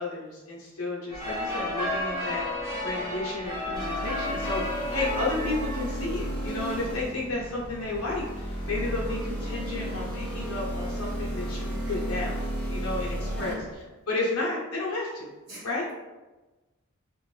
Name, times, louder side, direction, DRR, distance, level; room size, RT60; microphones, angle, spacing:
voice 1, 0.0-2.5 2.8-15.3 15.6-15.9, left 2 dB, 80° left, -4 dB, 0.9 m, -32 dB
sound 1, 1.1-13.7, left 1 dB, 15° right, 0.9 m, -35 dB
sound 2, 3.7-13.5, equal, 5° left, 0.6 m, -33 dB
voice 2, 13.3-13.7 15.5-15.7, right 1 dB, 50° right, -7 dB, 1.2 m, -41 dB
2.6 x 2.5 x 3.2 m, 1.1 s
head